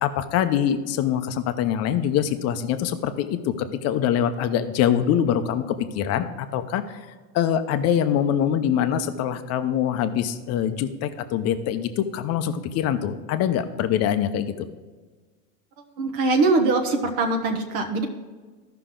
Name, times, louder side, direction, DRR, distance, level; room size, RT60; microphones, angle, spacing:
voice 1, 0.0-7.1 7.3-14.7, left 9 dB, 30° left, 9 dB, 0.7 m, -24 dB
voice 2, 16.0-18.1, right 3 dB, 45° right, 5 dB, 1.0 m, -22 dB
14.0 x 5.8 x 3.8 m, 1.4 s
supercardioid pair, 130°, 48 cm